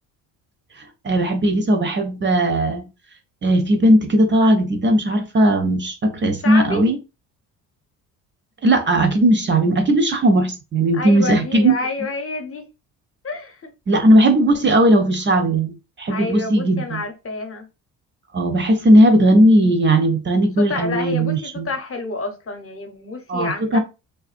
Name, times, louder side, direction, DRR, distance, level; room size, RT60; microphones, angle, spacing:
voice 1, 1.0-2.9 3.4-7.0 8.6-11.7 13.9-17.0 18.3-21.7 23.3-23.8, right 1 dB, 25° right, 0.5 m, -17 dB
voice 2, 6.4-6.8 10.9-12.6 13.2-13.7 16.1-17.7 20.6-23.8, left 3 dB, 30° left, 0.9 m, -28 dB
2.5 x 2.3 x 2.4 m
hypercardioid pair, 55°, 43 cm